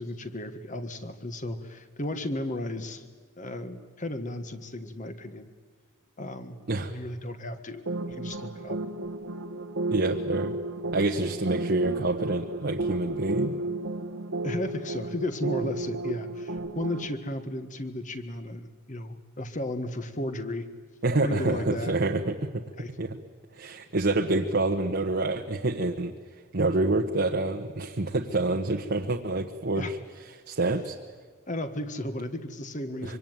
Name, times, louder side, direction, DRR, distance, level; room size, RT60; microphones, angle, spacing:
voice 1, 0.0-3.1 3.4-5.5 6.2-6.6 6.9-8.8 14.4-20.7 21.2-21.9 22.8-23.0 29.8-29.9 31.5-33.2, left 1 dB, 40° left, 9 dB, 1.7 m, -34 dB
sound 1, 7.9-17.1, right 2 dB, 70° right, 1.4 m, -33 dB
voice 2, 9.9-10.5 10.9-13.5 21.0-22.6 23.0-23.2 23.5-26.1 26.5-30.0 30.5-31.0 33.0-33.2, right 2 dB, 55° right, 3 dB, 1.2 m, -27 dB
25.0 x 24.0 x 9.3 m, 1.5 s
head